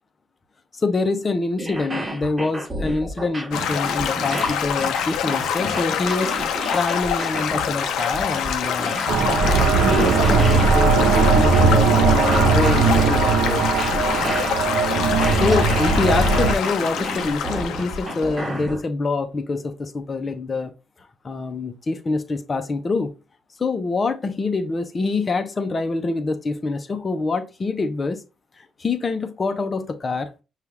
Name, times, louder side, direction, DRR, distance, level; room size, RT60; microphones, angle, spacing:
voice 1, 0.7-9.0 9.8-13.7 15.3-20.7 21.2-23.1 23.6-28.2 28.8-30.3, left 3 dB, 35° left, 0.7 m, -25 dB
sound 1, 1.5-18.8, right 1 dB, 25° right, 1.3 m, -32 dB
Stream / Gurgling / Trickle dribble, 3.5-18.6, left 8 dB, 85° left, 0.5 m, -26 dB
sound 2, 9.1-16.5, right 4 dB, 85° right, 0.7 m, -18 dB
5.5 x 2.4 x 3.3 m
cardioid pair, 90°, 0 cm